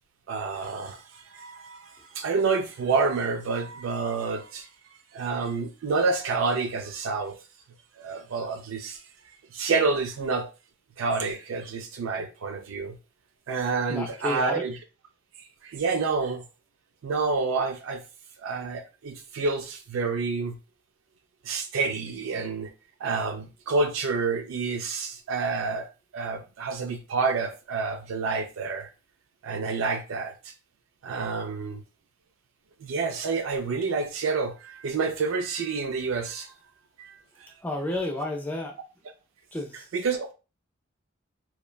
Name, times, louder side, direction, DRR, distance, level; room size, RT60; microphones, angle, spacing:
voice 1, 0.3-4.7 5.1-7.4 8.0-9.0 9.5-10.5 11.0-13.0 13.5-14.8 15.6-16.4 17.0-18.0 18.4-20.6 21.4-22.7 23.0-28.9 29.4-30.5 31.0-31.8 32.8-36.5 37.0-37.2 39.9-40.3, right 4 dB, 85° right, 0.4 m, -28 dB
voice 2, 13.9-14.6 37.6-38.8 39.5-39.9, left 2 dB, 10° left, 0.4 m, -31 dB
2.9 x 2.2 x 2.2 m
head